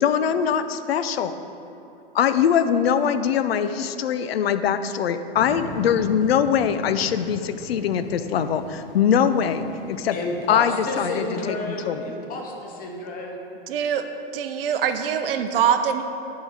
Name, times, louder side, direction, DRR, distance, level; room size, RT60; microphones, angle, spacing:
voice 1, 0.0-1.3 2.1-10.2 10.5-11.6 11.9-12.0, left 8 dB, 80° left, 11 dB, 0.5 m, -22 dB
sound 1, 5.3-11.1, left 1 dB, 10° left, 1.6 m, -39 dB
voice 2, 10.1-13.4, left 2 dB, 30° left, 0 dB, 1.2 m, -31 dB
voice 3, 13.7-14.1 14.3-16.0, right 8 dB, 65° right, 8 dB, 0.6 m, -23 dB
10.0 x 4.1 x 4.7 m, 2.9 s
hypercardioid pair, 110°, 30 cm